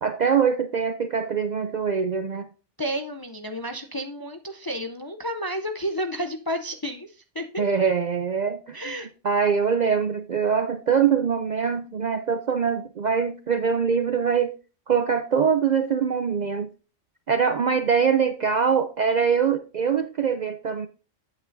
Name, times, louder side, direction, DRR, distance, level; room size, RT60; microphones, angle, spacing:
voice 1, 0.0-2.5 7.6-8.9 9.2-14.6 14.9-16.7 17.3-20.9, right 6 dB, 55° right, 9 dB, 0.5 m, -23 dB
voice 2, 2.8-7.6 8.7-9.1, equal, 30° left, 6 dB, 0.4 m, -31 dB
8.7 x 8.3 x 2.6 m, 0.35 s
omnidirectional pair, 1.2 m